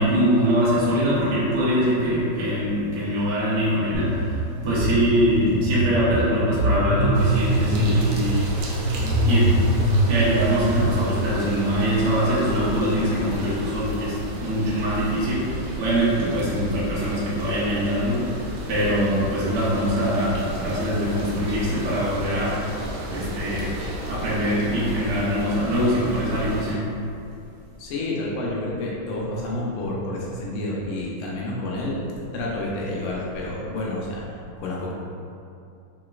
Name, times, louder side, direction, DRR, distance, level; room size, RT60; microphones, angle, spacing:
voice 1, 0.0-8.4 9.2-9.7 10.0-22.6 23.1-26.8, equal, 65° right, -9 dB, 1.2 m, -23 dB
sound 1, 3.9-10.8, right 1 dB, 40° right, 0.8 m, -23 dB
sound 2, 7.1-26.7, equal, 80° right, 1.5 m, -33 dB
voice 2, 27.8-32.1 32.3-34.2 34.6-34.9, left 1 dB, 80° left, -4 dB, 1.5 m, -29 dB
3.7 x 2.9 x 2.3 m, 2.6 s
omnidirectional pair, 2.4 m